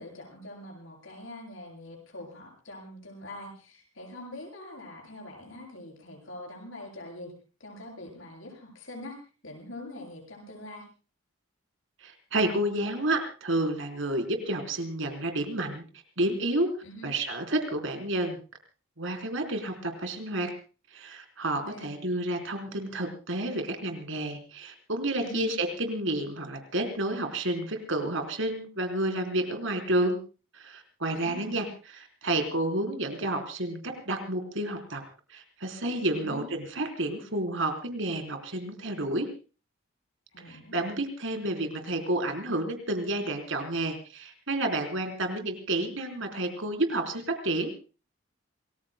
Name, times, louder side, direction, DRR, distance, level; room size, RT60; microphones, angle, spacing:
voice 1, 0.0-7.3 7.6-9.2 9.4-10.8 16.8-17.1 21.5-22.0 25.2-25.5 31.1-31.6 36.1-36.4 40.3-40.8, left 1 dB, 70° left, 1 dB, 7.7 m, -44 dB
voice 2, 12.0-15.8 16.2-16.7 17.0-18.4 19.0-20.5 20.9-30.2 30.5-35.0 35.3-39.3 40.4-47.7, right 1 dB, 70° right, 5 dB, 3.7 m, -30 dB
28.0 x 20.5 x 2.2 m, 0.35 s
head